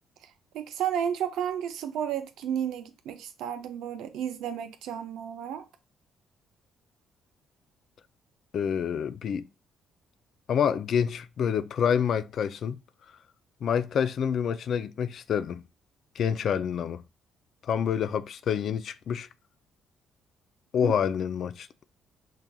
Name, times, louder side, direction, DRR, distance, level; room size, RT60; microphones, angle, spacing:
voice 1, 0.2-5.7 20.8-20.9, right 9 dB, 80° right, 0.5 m, -32 dB
voice 2, 8.5-9.5 10.5-12.8 13.6-15.6 16.2-17.0 17.7-19.3 20.7-21.7, left 8 dB, 65° left, 0.4 m, -27 dB
5.7 x 2.4 x 2.3 m
supercardioid pair, 75°, 0 cm